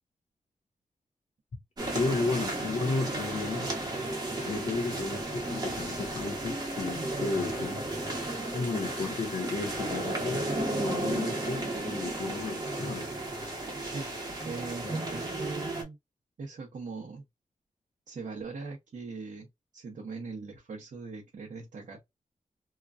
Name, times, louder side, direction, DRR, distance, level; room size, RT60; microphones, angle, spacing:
sound 1, 1.8-15.8, right 2 dB, 30° right, 1.1 m, -34 dB
voice 1, 1.9-3.7 4.5-7.8 8.5-13.1 14.8-14.9, left 3 dB, 55° left, 0.9 m, -33 dB
voice 2, 13.8-14.2 14.4-16.0 16.4-17.3 18.1-19.5 19.7-22.0, right 4 dB, 65° right, 0.9 m, -40 dB
2.9 x 2.4 x 2.4 m
wide cardioid pair, 160°, 14 cm